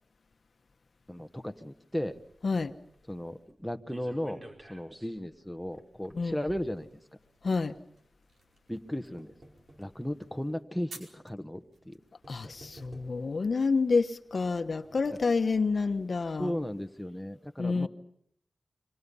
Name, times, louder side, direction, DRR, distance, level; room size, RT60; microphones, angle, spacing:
voice 1, 1.1-2.1 3.1-4.4 4.7-6.9 8.7-9.3 9.8-12.0 16.4-17.9, equal, ahead, 6 dB, 1.3 m, -35 dB
sound 1, 2.0-7.5 8.4-9.9 10.7-10.8 11.8-11.9 12.2-13.4 14.4-15.5 15.9-16.0 16.3-16.4, right 1 dB, 40° right, 4.9 m, -54 dB
sound 2, 6.9-13.1, right 2 dB, 90° right, 5.0 m, -56 dB
voice 2, 7.4-7.8 12.3-16.5 17.6-17.9, left 4 dB, 65° left, 8 dB, 1.1 m, -28 dB
27.0 x 24.5 x 5.5 m, 0.73 s
wide cardioid pair, 65°, 0 cm